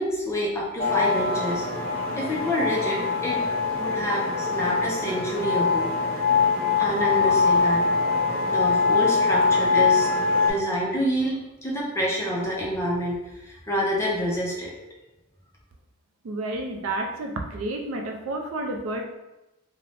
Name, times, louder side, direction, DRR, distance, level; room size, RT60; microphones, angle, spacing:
voice 1, 0.0-1.7 2.1-3.4 3.8-5.9 6.8-7.8 8.5-10.1 10.4-13.2 13.4-14.7, equal, 15° left, -3 dB, 0.5 m, -27 dB
sound 1, 0.8-10.5, left 4 dB, 30° left, 0.9 m, -23 dB
voice 2, 16.2-19.1, right 2 dB, 65° right, 3 dB, 0.4 m, -30 dB
2.5 x 2.0 x 3.2 m, 0.96 s
head